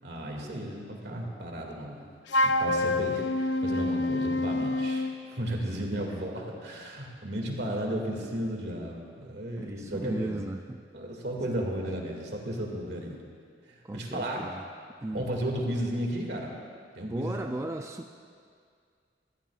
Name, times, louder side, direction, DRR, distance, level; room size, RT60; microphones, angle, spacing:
voice 1, 0.0-2.1 2.4-10.4 10.9-13.2 13.6-14.4 15.1-16.5 16.9-17.5, right 1 dB, 65° right, 0 dB, 2.2 m, -34 dB
Wind instrument woodwind instrument, 2.3-5.2, left 1 dB, 90° left, 0.6 m, -27 dB
voice 2, 5.7-6.2 9.6-10.8 11.6-11.7 13.8-14.6 15.0-15.3 17.0-18.1, right 2 dB, 15° right, 4 dB, 0.4 m, -37 dB
21.5 x 15.0 x 2.4 m, 2.2 s
head